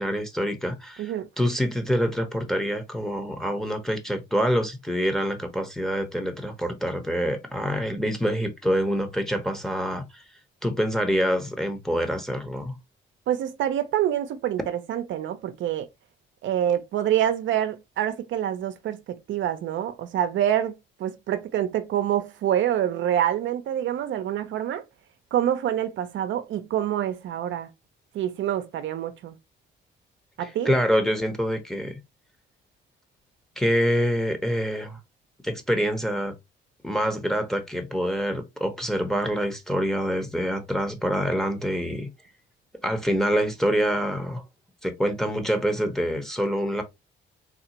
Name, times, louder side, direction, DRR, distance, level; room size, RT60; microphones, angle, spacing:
voice 1, 0.0-10.2 10.6-12.8 30.4-32.0 33.6-35.0 35.4-36.3 36.8-42.1 42.8-44.4 44.8-46.8, equal, ahead, 0.9 m, -26 dB
voice 2, 13.3-15.9 16.4-20.7 21.0-24.8 25.3-27.7 28.1-29.3 30.4-30.7, right 11 dB, 75° right, 0.6 m, -26 dB
3.7 x 2.4 x 2.8 m
cardioid pair, 90°, 20 cm